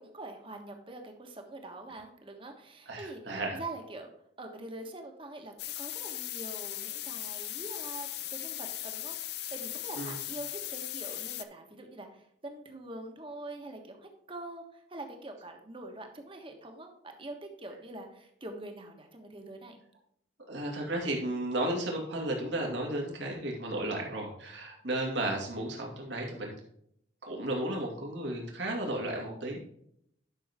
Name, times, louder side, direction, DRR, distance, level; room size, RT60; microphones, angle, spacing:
voice 1, 0.0-3.2 3.5-4.1 4.4-19.8, right 2 dB, 30° right, 4 dB, 1.4 m, -44 dB
voice 2, 2.9-3.6 10.0-10.2 20.5-26.6 27.2-29.7, right 1 dB, 75° right, 0 dB, 2.4 m, -34 dB
sound 1, 5.6-11.4, left 13 dB, 60° left, 0.6 m, -38 dB
11.0 x 6.2 x 3.6 m, 0.70 s
head